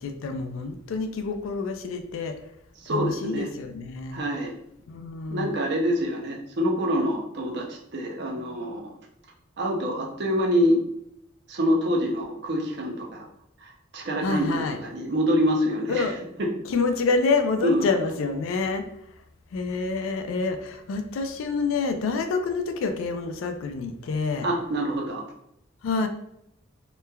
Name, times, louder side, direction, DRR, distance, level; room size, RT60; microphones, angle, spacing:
voice 1, 0.0-2.4 2.9-4.2 4.9-5.5 14.2-14.8 15.9-16.1 16.7-18.9 19.5-24.5 25.8-26.1, left 4 dB, 75° left, 7 dB, 0.3 m, -27 dB
voice 2, 2.8-3.5 4.1-4.5 5.3-8.9 9.6-10.8 11.5-13.3 13.6-16.5 17.6-18.1 24.4-25.2, equal, 55° right, 0 dB, 0.5 m, -26 dB
3.0 x 2.2 x 2.2 m, 0.77 s
head